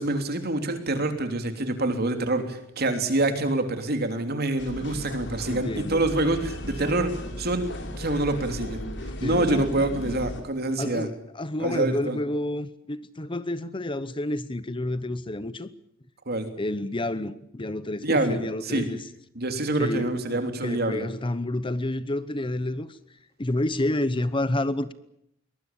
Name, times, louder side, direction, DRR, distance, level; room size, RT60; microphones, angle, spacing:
voice 1, 0.0-7.7 8.0-8.8 9.2-11.1 11.6-12.2 16.3-16.5 18.0-18.9 19.3-21.1, right 2 dB, 50° right, 3.3 m, -26 dB
sound 1, 4.6-10.4, equal, 65° left, 3.7 m, -36 dB
voice 2, 5.5-6.1 9.2-10.0 10.8-15.7 16.6-19.0 19.8-23.0 23.4-24.9, left 1 dB, 25° left, 0.9 m, -29 dB
23.0 x 19.5 x 8.6 m
head